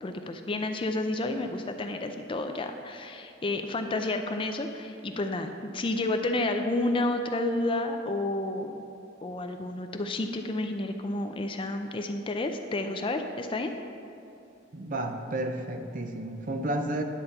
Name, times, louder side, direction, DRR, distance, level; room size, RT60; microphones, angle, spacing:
voice 1, 0.0-8.8 9.2-13.7, left 2 dB, 25° left, 6 dB, 0.4 m, -30 dB
voice 2, 14.7-17.0, right 1 dB, 45° right, 5 dB, 0.6 m, -32 dB
10.0 x 4.2 x 6.5 m, 2.7 s
head